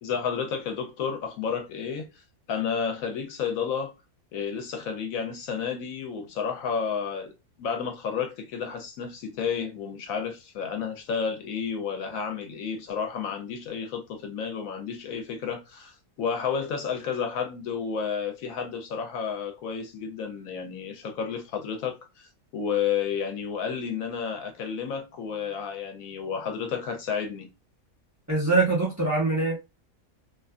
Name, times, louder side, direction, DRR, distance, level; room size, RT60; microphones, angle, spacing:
voice 1, 0.0-2.2 2.5-3.9 4.3-7.3 7.6-27.5, left 6 dB, 75° left, 1.0 m, -31 dB
voice 2, 28.3-29.6, right 3 dB, 15° right, 0.7 m, -23 dB
2.6 x 2.5 x 2.3 m
omnidirectional pair, 1.5 m